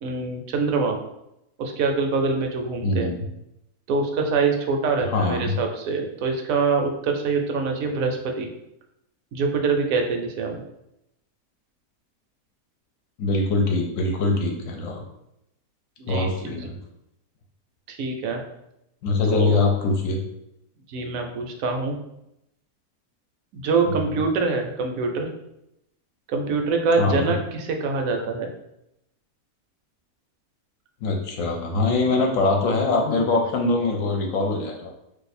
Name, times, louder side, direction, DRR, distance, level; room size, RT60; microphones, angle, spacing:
voice 1, 0.0-1.0 1.6-3.1 3.9-8.5 9.3-10.6 16.0-16.6 17.9-18.4 19.3-19.6 20.9-22.0 23.5-25.3 26.3-28.5, right 4 dB, 75° right, 3 dB, 1.0 m, -24 dB
voice 2, 2.8-3.2 5.1-5.6 13.2-15.0 16.1-16.8 19.0-20.2 23.9-24.0 27.0-27.4 31.0-34.9, left 3 dB, 70° left, 2 dB, 0.9 m, -23 dB
2.6 x 2.4 x 4.1 m, 0.83 s
omnidirectional pair, 1.5 m